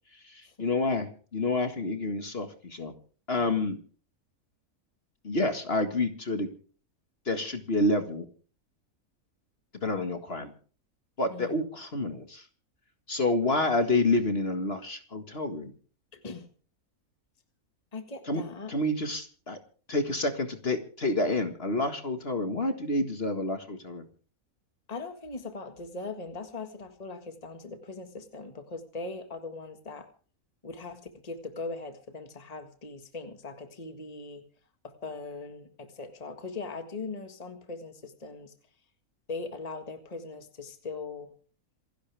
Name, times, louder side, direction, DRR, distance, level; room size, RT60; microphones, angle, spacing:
voice 1, 0.1-2.9 3.3-3.8 5.2-6.5 7.3-8.3 9.8-10.5 11.2-12.5 13.1-15.7 18.3-18.4 18.7-19.6 19.9-24.1, left 2 dB, 45° left, 7 dB, 2.0 m, -28 dB
voice 2, 16.1-16.5 17.9-18.7 24.9-30.1 30.6-34.4 34.8-38.5 39.3-41.3, left 3 dB, 25° left, 7 dB, 1.8 m, -40 dB
27.5 x 11.5 x 3.5 m, 0.41 s
omnidirectional pair, 1.5 m